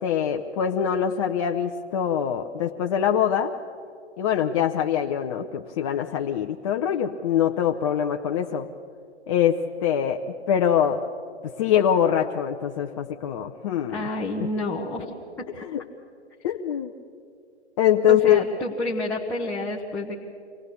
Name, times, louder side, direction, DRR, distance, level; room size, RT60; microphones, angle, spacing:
voice 1, 0.0-3.5 4.2-8.7 9.3-11.0 11.4-14.1 15.6-15.8 16.4-16.9 17.8-18.4, left 9 dB, 30° left, 2 dB, 0.6 m, -23 dB
voice 2, 13.9-15.1 15.6-15.7 18.1-20.2, left 2 dB, 5° left, -3 dB, 1.0 m, -29 dB
25.5 x 17.5 x 6.9 m, 2.4 s
figure-of-eight pair, 130°, 34 cm